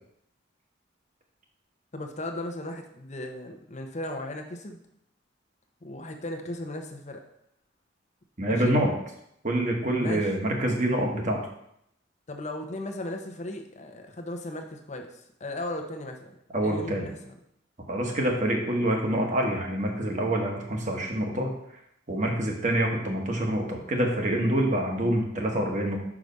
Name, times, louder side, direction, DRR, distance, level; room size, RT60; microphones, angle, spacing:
voice 1, 1.9-4.8 5.8-7.2 8.5-8.8 10.0-10.3 12.3-17.3, left 1 dB, 40° left, 4 dB, 0.8 m, -36 dB
voice 2, 8.4-8.9 9.4-11.4 16.5-17.1 17.9-21.5 22.1-26.0, right 1 dB, 40° right, 1 dB, 1.4 m, -26 dB
5.7 x 4.9 x 5.3 m, 0.74 s
head